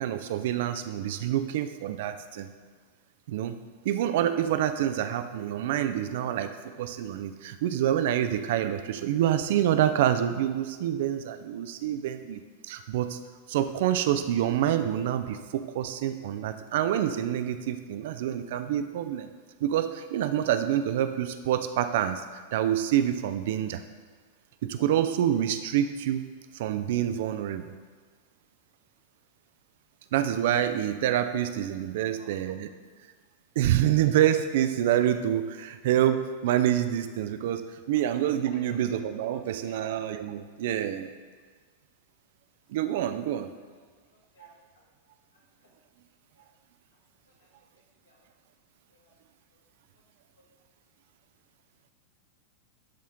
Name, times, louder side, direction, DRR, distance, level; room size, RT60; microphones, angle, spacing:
voice 1, 0.0-2.5 3.3-3.6 3.8-13.2 13.5-19.3 19.6-23.8 24.6-26.2 26.5-27.6 30.1-32.7 33.6-41.1 42.7-43.5, right 11 dB, 55° right, 10 dB, 0.4 m, -27 dB
voice 2, 32.0-32.3 37.9-38.0 38.5-38.9 39.3-39.9 43.7-43.8 44.1-44.8 45.6-45.7 46.3-46.5 47.4-47.5 48.0-48.2 48.9-49.1, left 2 dB, 65° left, -4 dB, 2.0 m, -57 dB
11.0 x 4.2 x 3.7 m, 1.5 s
figure-of-eight pair, 90°, 0 cm